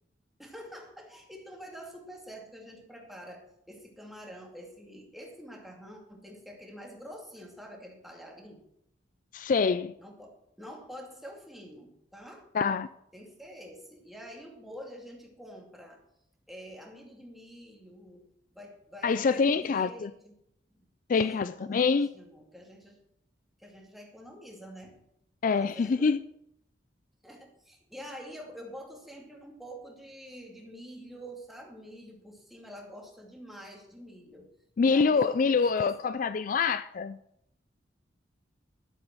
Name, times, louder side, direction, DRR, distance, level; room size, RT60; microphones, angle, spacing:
voice 1, 0.4-8.6 10.0-10.3 10.6-12.5 13.1-16.0 16.5-18.2 18.5-20.3 20.7-20.9 21.1-23.0 23.6-25.0 25.5-26.1 27.2-34.5 34.8-36.0, equal, ahead, 2.5 m, -47 dB
voice 2, 9.3-10.0 12.5-12.9 19.0-20.1 21.1-22.1 25.4-26.2 34.8-37.2, left 5 dB, 45° left, 0.3 m, -25 dB
12.0 x 8.1 x 6.2 m
head